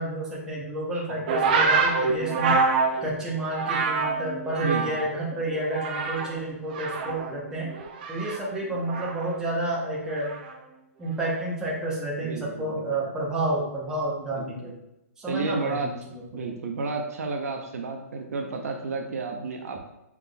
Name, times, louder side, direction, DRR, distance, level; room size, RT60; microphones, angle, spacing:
voice 1, 0.0-2.6 3.0-7.7 8.1-10.3 11.0-14.7 15.2-16.0 16.4-16.5, right 1 dB, 5° right, -5 dB, 0.8 m, -30 dB
voice 2, 0.9-1.3 4.6-5.0 12.2-12.9 14.4-14.7 15.3-15.9 16.3-19.9, right 4 dB, 65° right, 3 dB, 0.7 m, -32 dB
sound 1, 1.3-5.2 5.5-6.4 6.7-9.4 10.2-10.6, right 4 dB, 35° right, 0.5 m, -26 dB
5.8 x 3.5 x 2.3 m, 0.91 s
hypercardioid pair, 165°, 9 cm